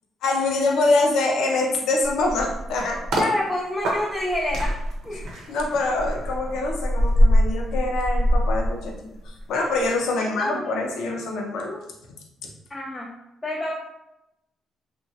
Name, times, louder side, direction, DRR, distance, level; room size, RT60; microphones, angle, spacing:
voice 1, 0.2-3.0 5.5-9.0 9.2-11.8, left 2 dB, 80° left, 1 dB, 0.5 m, -24 dB
sound 1, 2.0-3.3 3.8-9.4 9.7-10.0, equal, 85° right, 0.7 m, -23 dB
voice 2, 3.2-4.8 5.0-5.3 10.2-10.8 12.7-13.1 13.4-13.7, left 1 dB, 20° left, -2 dB, 0.4 m, -28 dB
2.8 x 2.1 x 2.7 m, 0.89 s
cardioid pair, 90°, 0 cm